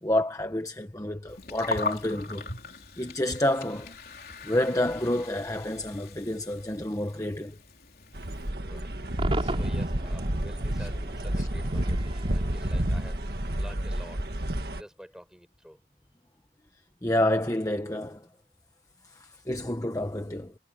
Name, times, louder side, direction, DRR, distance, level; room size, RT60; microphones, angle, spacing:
voice 1, 0.0-2.5 3.0-3.9 4.4-7.6 9.4-9.6 10.8-10.9 11.4-11.5 17.0-18.3 19.0-20.5, left 1 dB, 20° left, 1.0 m, -29 dB
Gurgling, 1.3-8.5, left 3 dB, 55° left, 4.3 m, -40 dB
sound 1, 8.1-14.8, right 1 dB, 55° right, 1.9 m, -30 dB
voice 2, 8.6-8.9 9.5-13.2 13.6-14.3 14.7-15.8, equal, 5° right, 4.6 m, -48 dB
Cheering / Crowd / Fireworks, 9.2-14.5, right 1 dB, 30° right, 6.8 m, -40 dB
head